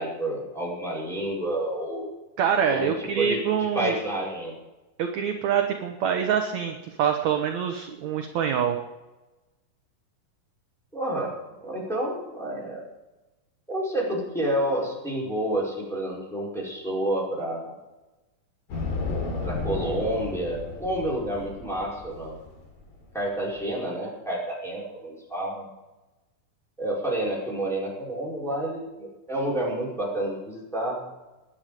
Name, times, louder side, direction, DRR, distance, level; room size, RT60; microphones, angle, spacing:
voice 1, 0.0-2.1 2.7-3.4 3.7-4.5 10.9-11.3 11.6-12.8 13.7-17.7 19.4-22.4 23.1-25.7 26.8-31.1, right 1 dB, ahead, -5 dB, 4.9 m, -29 dB
voice 2, 2.4-3.9 5.0-8.8, right 8 dB, 65° right, 4 dB, 2.0 m, -25 dB
sound 1, 18.7-23.6, left 3 dB, 70° left, 4.8 m, -33 dB
20.0 x 10.0 x 5.1 m, 1.1 s
omnidirectional pair, 4.0 m